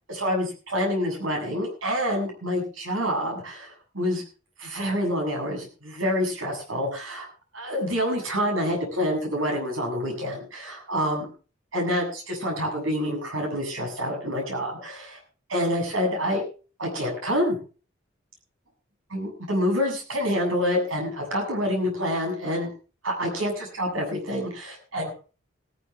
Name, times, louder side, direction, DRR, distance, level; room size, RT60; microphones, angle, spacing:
voice 1, 0.1-4.2 4.6-7.3 7.5-11.3 11.7-15.2 15.5-16.4 16.8-17.6 19.1-22.7 23.0-25.1, equal, 80° right, 1 dB, 7.8 m, -27 dB
17.5 x 14.5 x 3.3 m, 0.36 s
head